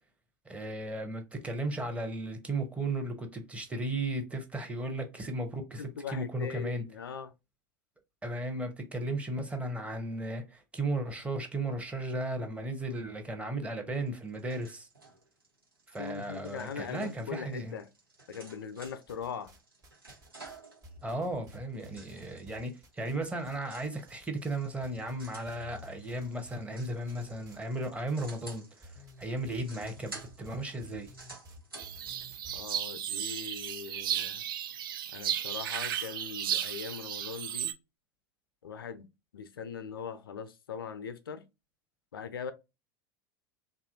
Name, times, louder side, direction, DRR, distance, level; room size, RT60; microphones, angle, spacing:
voice 1, 0.5-6.8 8.2-14.9 15.9-17.8 21.0-31.1 33.9-34.0, right 2 dB, 10° right, 0.8 m, -35 dB
voice 2, 5.8-7.3 16.0-17.9 18.3-19.5 32.5-34.4 35.1-37.7 38.6-39.1 39.3-41.4 42.1-42.5, left 6 dB, 80° left, 0.4 m, -40 dB
sound 1, 14.0-32.3, right 3 dB, 90° right, 1.2 m, -53 dB
sound 2, 18.8-19.6 19.8-23.6 23.8-24.6 24.8-32.6, equal, 30° right, 1.2 m, -52 dB
sound 3, 31.8-37.7, right 10 dB, 70° right, 0.4 m, -34 dB
2.7 x 2.4 x 2.6 m
figure-of-eight pair, 85°, 12 cm